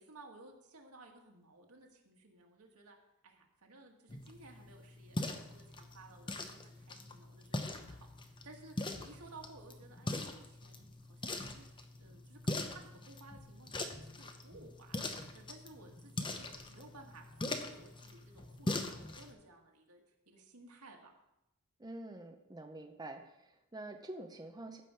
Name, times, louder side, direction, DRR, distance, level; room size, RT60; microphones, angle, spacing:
voice 1, 0.0-3.0 3.2-11.7 12.0-21.1, right 2 dB, 85° right, 2 dB, 1.8 m, -57 dB
sound 1, 4.1-19.3, left 2 dB, 20° left, 0.8 m, -42 dB
voice 2, 21.8-24.8, right 2 dB, 20° right, 4 dB, 0.7 m, -47 dB
14.5 x 5.0 x 5.7 m, 0.89 s
head